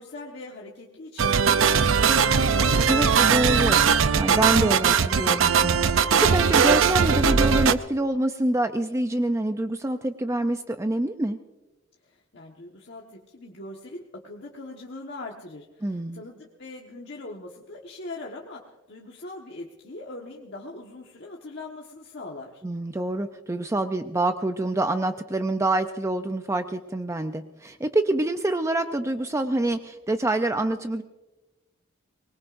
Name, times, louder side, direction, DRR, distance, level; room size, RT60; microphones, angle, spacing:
voice 1, 0.0-2.8 12.0-22.6, left 2 dB, 60° left, -2 dB, 1.4 m, -41 dB
sound 1, 1.2-7.7, right 6 dB, 85° right, 0.6 m, -20 dB
voice 2, 2.9-11.4 15.8-16.2 22.6-31.0, right 2 dB, 15° right, 8 dB, 0.5 m, -26 dB
23.5 x 20.5 x 2.6 m, 1.1 s
head